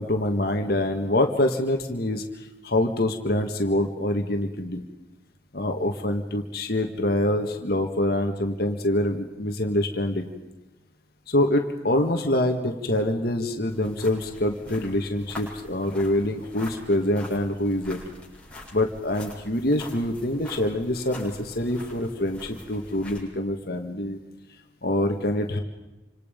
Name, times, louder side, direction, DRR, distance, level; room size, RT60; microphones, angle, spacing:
voice 1, 0.0-4.8 5.5-10.3 11.3-18.0 18.7-24.2 24.8-25.6, left 1 dB, 55° left, 4 dB, 1.8 m, -25 dB
sound 1, 13.7-23.2, left 1 dB, 5° left, 6.9 m, -43 dB
28.5 x 26.5 x 5.3 m, 1.0 s
head